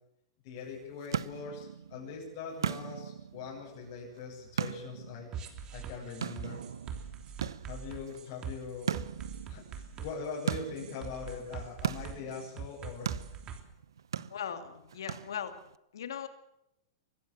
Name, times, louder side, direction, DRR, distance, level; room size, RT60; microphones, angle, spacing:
voice 1, 0.4-5.3 5.7-6.6 7.7-9.0 9.5-13.1, left 5 dB, 55° left, -4 dB, 7.7 m, -42 dB
sound 1, 0.6-15.8, right 8 dB, 90° right, 0.8 m, -40 dB
sound 2, 5.3-13.6, right 7 dB, 30° right, 3.3 m, -43 dB
voice 2, 14.3-15.5 15.9-16.3, left 8 dB, 85° left, 8 dB, 2.4 m, -38 dB
23.5 x 15.5 x 7.5 m, 0.84 s
hypercardioid pair, 125°, 2 cm